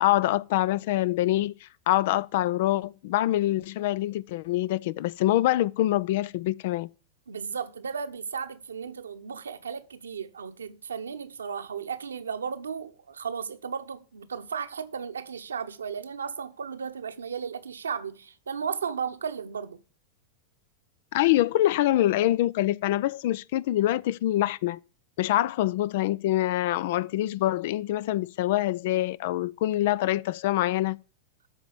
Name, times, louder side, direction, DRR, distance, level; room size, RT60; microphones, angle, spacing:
voice 1, 0.0-6.9 21.1-24.8 25.2-31.0, left 14 dB, 50° left, 0.4 m, -25 dB
voice 2, 7.3-19.8, right 6 dB, 70° right, 1.0 m, -35 dB
13.5 x 5.1 x 6.8 m
figure-of-eight pair, 90°, 0 cm